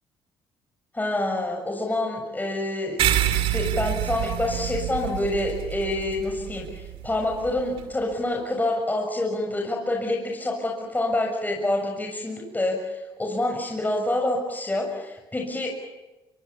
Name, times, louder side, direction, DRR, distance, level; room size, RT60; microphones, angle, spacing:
voice 1, 0.9-3.0 3.5-15.7, left 1 dB, 15° left, 0 dB, 6.8 m, -27 dB
sound 1, 3.0-7.8, right 11 dB, 75° right, 2.7 m, -28 dB
25.5 x 24.5 x 7.1 m, 1.1 s
supercardioid pair, 60°, 10 cm